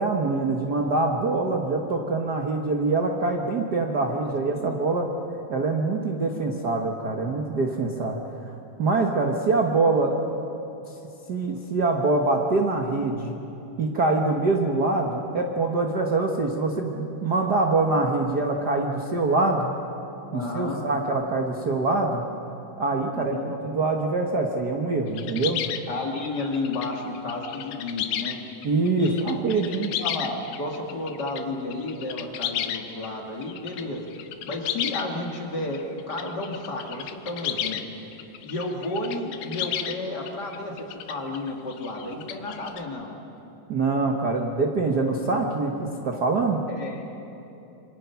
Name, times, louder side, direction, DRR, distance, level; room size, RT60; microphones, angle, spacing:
voice 1, 0.0-5.1 5.5-8.2 8.4-8.5 8.8-10.2 11.3-13.4 13.8-19.7 20.3-22.2 22.8-25.6 28.6-29.9 43.7-46.6, right 3 dB, 85° right, 2 dB, 0.8 m, -24 dB
voice 2, 20.3-20.8 23.1-23.5 25.9-28.4 29.0-29.2 29.5-34.1 34.5-37.8 38.4-43.1 46.7-47.1, left 2 dB, 35° left, 0 dB, 2.2 m, -32 dB
sound 1, 25.1-31.4 31.7-33.1 33.4-35.3 35.7-37.8 38.1-42.8, left 11 dB, 80° left, 2.5 m, -33 dB
27.5 x 24.5 x 5.8 m, 2.9 s
omnidirectional pair, 4.0 m